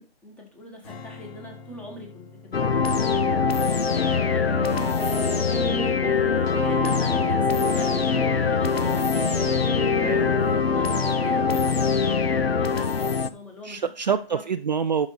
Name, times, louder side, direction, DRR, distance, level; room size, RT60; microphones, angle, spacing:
voice 1, 0.0-6.0 6.4-9.5 10.5-14.4, equal, 5° left, 1 dB, 1.3 m, -43 dB
Strum, 0.8-7.2, left 4 dB, 35° left, 5.9 m, -49 dB
sound 1, 2.5-13.3, left 5 dB, 75° left, 1.0 m, -23 dB
Wind instrument woodwind instrument, 3.9-12.2, right 6 dB, 70° right, 0.8 m, -36 dB
voice 2, 10.0-10.5 13.6-15.1, right 6 dB, 45° right, 11 dB, 0.5 m, -26 dB
12.0 x 5.3 x 4.0 m, 0.36 s
figure-of-eight pair, 150°, 31 cm